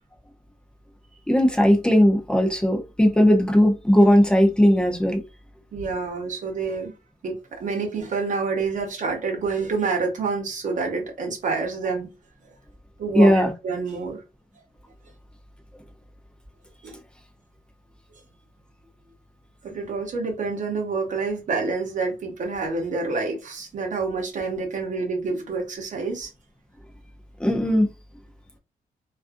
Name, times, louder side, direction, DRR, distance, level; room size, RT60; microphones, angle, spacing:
voice 1, 1.3-5.2 13.1-13.5 27.4-27.9, equal, 5° left, 0.4 m, -18 dB
voice 2, 5.7-6.9 7.2-12.1 13.0-14.2 16.8-16.9 19.6-26.3, right 4 dB, 55° right, 0.8 m, -28 dB
2.4 x 2.4 x 2.5 m
wide cardioid pair, 180°, 15 cm